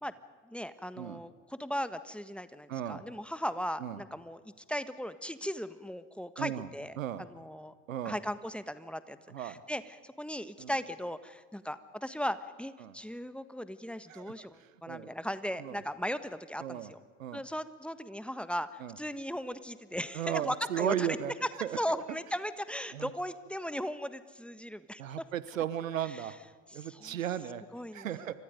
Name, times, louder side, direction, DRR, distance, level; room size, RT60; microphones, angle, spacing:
voice 1, 0.5-4.4 4.7-7.7 8.0-17.0 17.3-21.5 21.8-25.2 26.0-26.3 26.7-27.2 27.7-28.3, equal, 5° left, 12 dB, 1.4 m, -37 dB
voice 2, 2.7-3.0 3.8-4.0 6.4-6.7 7.0-7.2 7.9-8.2 9.3-9.6 10.6-10.7 12.8-12.9 14.1-14.5 14.9-15.1 15.6-15.8 16.6-16.9 17.2-17.4 18.8-18.9 20.1-21.3 21.6-22.0 22.9-23.1 25.0-26.4 26.7-27.6 27.9-28.3, right 10 dB, 85° right, 15 dB, 1.3 m, -35 dB
28.5 x 25.0 x 5.2 m, 1.5 s
hypercardioid pair, 70°, 39 cm